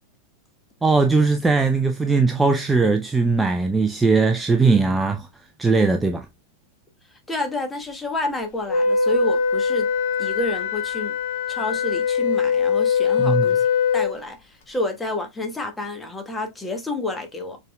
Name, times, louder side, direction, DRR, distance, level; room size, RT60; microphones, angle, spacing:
voice 1, 0.8-5.3 5.6-6.3 13.2-13.5, right 4 dB, 10° right, 0.5 m, -19 dB
voice 2, 7.3-9.9 10.2-11.1 11.5-13.7 13.9-17.6, left 2 dB, 10° left, 1.2 m, -29 dB
Wind instrument woodwind instrument, 8.7-14.2, left 6 dB, 50° left, 1.3 m, -22 dB
6.5 x 3.6 x 2.2 m
figure-of-eight pair, 90°, 0 cm